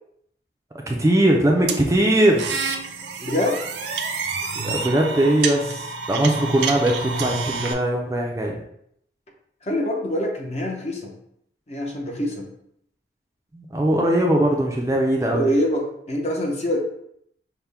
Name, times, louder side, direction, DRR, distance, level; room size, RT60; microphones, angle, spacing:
voice 1, 0.9-2.6 4.6-8.6 13.5-15.5, right 1 dB, 15° right, 0 dB, 0.4 m, -20 dB
sound 1, 1.7-7.7, right 4 dB, 75° right, 0.5 m, -28 dB
voice 2, 3.2-3.6 9.7-11.1 11.7-12.5 15.2-16.8, equal, 40° left, 0 dB, 0.7 m, -25 dB
5.7 x 2.2 x 3.4 m, 0.72 s
head